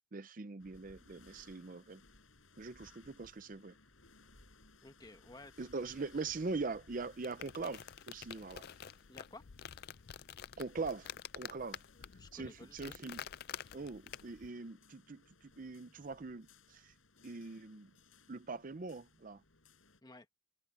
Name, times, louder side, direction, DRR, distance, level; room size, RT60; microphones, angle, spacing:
voice 1, 0.1-2.0 2.6-3.8 5.6-8.7 10.6-11.1 11.4-11.8 12.3-13.2 13.7-16.9 17.2-17.9 18.3-19.4, right 3 dB, 40° right, 0.6 m, -42 dB
sound 1, 0.6-20.0, left 3 dB, 85° left, 5.5 m, -63 dB
voice 2, 4.8-5.6 9.1-9.5 12.2-12.9 20.0-20.3, left 2 dB, 20° left, 1.4 m, -54 dB
sound 2, 7.0-14.5, left 9 dB, 50° left, 0.4 m, -49 dB
open air
head